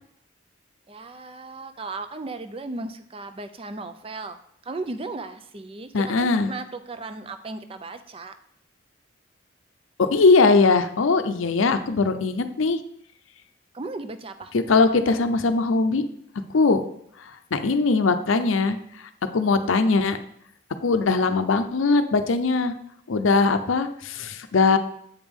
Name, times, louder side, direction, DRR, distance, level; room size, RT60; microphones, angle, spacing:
voice 1, 0.9-4.4 4.6-8.3 13.7-14.5, right 3 dB, 25° right, 10 dB, 0.4 m, -36 dB
voice 2, 5.9-6.5 10.0-12.8 14.5-16.0 16.5-16.8 17.5-18.8 19.3-20.2 20.8-22.7 23.1-24.8, left 4 dB, 80° left, 9 dB, 0.6 m, -20 dB
8.0 x 5.1 x 3.6 m, 0.70 s
head